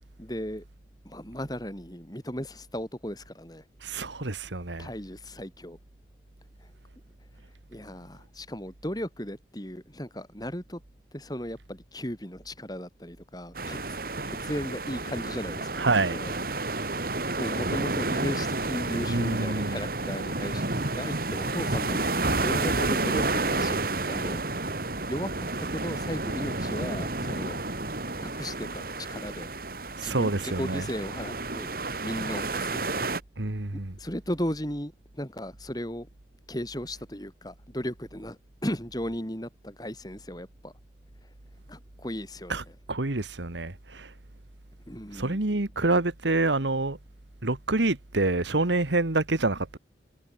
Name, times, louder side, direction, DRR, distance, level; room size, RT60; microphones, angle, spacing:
voice 1, 0.2-0.6 1.0-3.6 4.8-5.8 7.7-10.8 11.1-13.8 14.3-15.8 16.1-16.3 17.4-23.8 24.1-24.4 25.1-25.5 25.7-27.6 28.2-29.5 30.0-31.7 32.0-32.9 33.7-36.1 36.5-40.7 41.7-42.6 44.9-45.4, equal, 20° left, 6.1 m, -36 dB
voice 2, 3.8-4.9 15.8-16.2 19.1-19.9 30.0-30.9 33.4-34.0 42.5-42.6 42.9-44.1 45.1-47.0 47.4-49.8, right 2 dB, 80° right, 1.7 m, -27 dB
sound 1, 13.5-33.2, right 2 dB, 50° right, 2.9 m, -30 dB
head